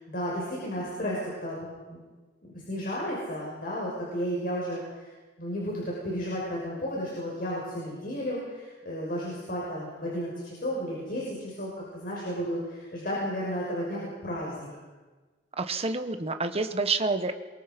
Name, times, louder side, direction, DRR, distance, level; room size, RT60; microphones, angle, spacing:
voice 1, 0.0-2.0 2.5-5.1 5.4-14.7, equal, 55° left, -4 dB, 6.0 m, -33 dB
voice 2, 15.6-17.3, right 3 dB, 35° right, 8 dB, 1.4 m, -28 dB
27.0 x 23.5 x 5.4 m, 1.3 s
head